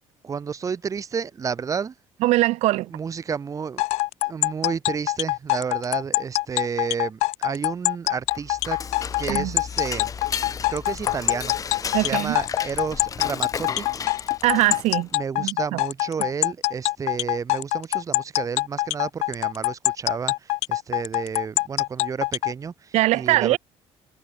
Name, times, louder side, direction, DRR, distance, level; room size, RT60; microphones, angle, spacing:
voice 1, 0.2-1.9 2.9-3.8 4.2-8.8 9.1-10.1 10.4-11.6 11.9-13.9 15.1-23.6, right 6 dB, 30° right, 2.3 m, -31 dB
voice 2, 2.2-2.9 9.3-9.6 11.9-12.4 14.4-15.1 15.4-15.8 22.9-23.6, right 18 dB, 80° right, 3.2 m, -21 dB
sound 1, 3.8-22.5, left 20 dB, 80° left, 0.7 m, -24 dB
Dishes pots and pans / Cutlery silverware, 8.2-15.1, left 6 dB, 30° left, 2.4 m, -34 dB
cardioid pair, 130°, 11 cm